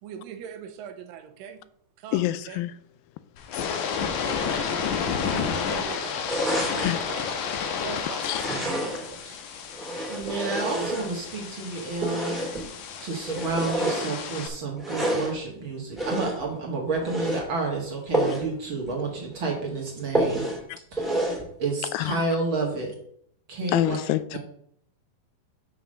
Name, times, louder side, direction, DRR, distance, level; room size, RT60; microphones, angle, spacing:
voice 1, 0.0-1.6 2.0-2.6 4.2-4.6 5.0-6.3 6.7-7.3 7.8-8.2, right 8 dB, 80° right, 2.3 m, -41 dB
voice 2, 2.1-2.7 6.6-7.0 8.3-8.4 20.7-20.8 21.9-22.2 23.7-24.4, left 15 dB, 85° left, 2.3 m, -27 dB
sound 1, 3.4-14.5, left 6 dB, 70° left, 2.1 m, -31 dB
sound 2, 6.3-7.1 8.2-9.2 9.7-11.4 12.0-12.7 13.3-14.1 14.8-15.4 16.0-16.5 17.0-17.5 18.1-18.5 18.9-19.0 19.3-19.4 20.1-20.6 21.0-21.5, right 1 dB, ahead, 1.9 m, -28 dB
voice 3, 10.1-12.5 13.0-20.4 20.9-21.0 21.6-22.9 23.5-24.0 24.3-24.4, right 3 dB, 50° right, 1.7 m, -30 dB
7.0 x 5.7 x 6.4 m
omnidirectional pair, 4.1 m